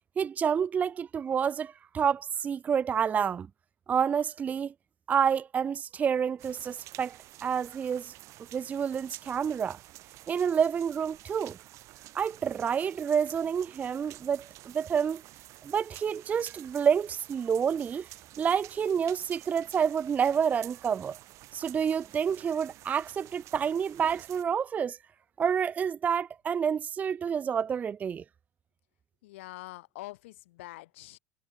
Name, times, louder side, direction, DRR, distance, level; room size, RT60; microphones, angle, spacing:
voice 1, 0.2-3.5 3.9-4.7 5.1-8.1 8.5-9.8 10.3-11.6 12.1-15.2 15.6-18.1 18.4-21.2 21.5-25.0 25.4-28.2, right 7 dB, 25° right, 0.5 m, -28 dB
sound 1, 6.4-24.4, right 17 dB, 50° right, 2.7 m, -50 dB
voice 2, 29.2-31.2, left 18 dB, 80° left, 3.5 m, -45 dB
supercardioid pair, 130°, 7 cm